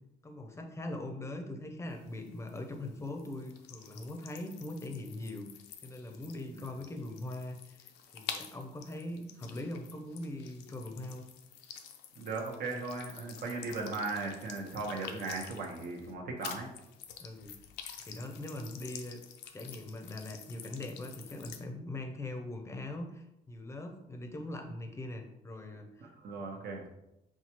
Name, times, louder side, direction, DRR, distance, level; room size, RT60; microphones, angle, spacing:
voice 1, 0.2-5.5 5.8-11.3 17.2-17.6 18.1-19.2 19.5-26.1 26.5-26.6, left 1 dB, 15° left, 4 dB, 0.6 m, -41 dB
sound 1, 1.9-16.1 16.4-21.6, left 8 dB, 85° left, 0.5 m, -49 dB
voice 2, 12.2-16.7 26.2-26.9, right 3 dB, 60° right, 0 dB, 1.0 m, -37 dB
5.6 x 2.4 x 2.9 m, 0.85 s
cardioid pair, 110°, 17 cm